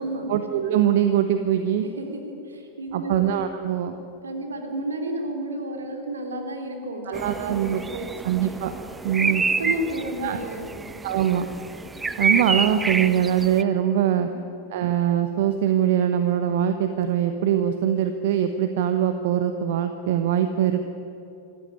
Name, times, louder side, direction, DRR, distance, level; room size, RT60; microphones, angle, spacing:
voice 1, 0.3-1.8 2.9-3.9 7.1-7.8 8.2-8.7 9.0-9.4 10.2-10.4 11.0-11.5 12.2-14.3 14.7-20.9, right 10 dB, 55° right, 8 dB, 1.2 m, -22 dB
voice 2, 2.0-3.1 4.2-8.1 9.2-9.3 9.6-10.8 14.2-14.5, right 1 dB, 70° right, 4 dB, 3.5 m, -32 dB
sound 1, 7.1-13.6, right 3 dB, 10° right, 0.7 m, -28 dB
26.5 x 14.0 x 10.0 m, 2.8 s
figure-of-eight pair, 90°, 0 cm